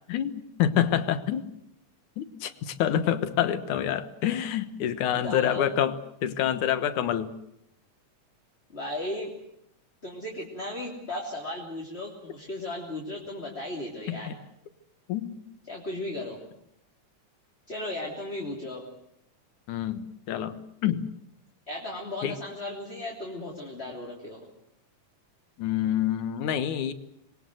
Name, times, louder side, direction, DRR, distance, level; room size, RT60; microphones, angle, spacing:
voice 1, 0.1-1.5 2.2-6.0 6.2-7.3 14.1-14.3 15.1-15.4 19.7-21.1 22.2-22.4 25.6-26.9, left 10 dB, 75° left, 12 dB, 2.7 m, -27 dB
voice 2, 5.1-5.7 8.7-9.3 10.0-14.3 15.7-16.4 17.7-18.8 21.7-24.5, left 1 dB, 20° left, -1 dB, 3.2 m, -36 dB
26.5 x 22.0 x 7.9 m, 0.76 s
omnidirectional pair, 3.6 m